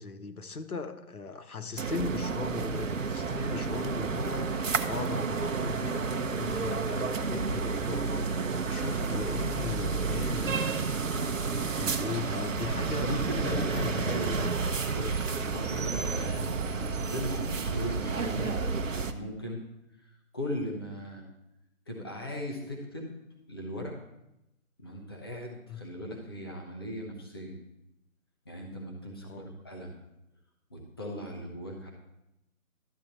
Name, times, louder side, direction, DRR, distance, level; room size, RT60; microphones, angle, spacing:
voice 1, 0.0-10.6 11.1-14.6 25.7-25.9 29.2-29.5, left 5 dB, 85° left, 9 dB, 1.1 m, -38 dB
sound 1, 1.8-19.1, right 4 dB, 60° right, 0.9 m, -31 dB
sound 2, 11.4-13.9 16.0-16.2, right 2 dB, 15° right, 3.8 m, -51 dB
voice 2, 12.8-14.4 14.9-19.7 20.0-21.2 21.9-23.1 23.5-24.0 24.8-27.6 28.4-29.9 30.7-31.9, equal, 15° left, 0 dB, 0.9 m, -38 dB
12.0 x 7.9 x 4.3 m, 0.90 s
figure-of-eight pair, 165°, 43 cm